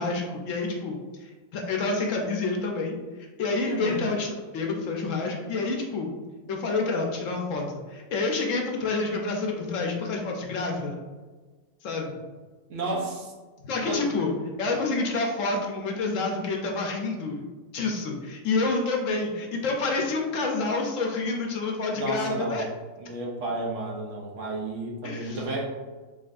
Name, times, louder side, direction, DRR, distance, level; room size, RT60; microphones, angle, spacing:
voice 1, 0.0-3.0 3.4-4.3 4.5-6.1 6.5-10.9 11.8-12.2 13.6-14.3 14.6-17.4 17.7-22.6 25.0-25.4, left 3 dB, 70° left, 1 dB, 0.9 m, -28 dB
voice 2, 3.7-4.1 12.7-13.3 13.9-14.0 21.9-22.6 23.0-25.7, right 2 dB, 60° right, -2 dB, 1.1 m, -31 dB
4.0 x 4.0 x 2.5 m, 1.3 s
omnidirectional pair, 1.5 m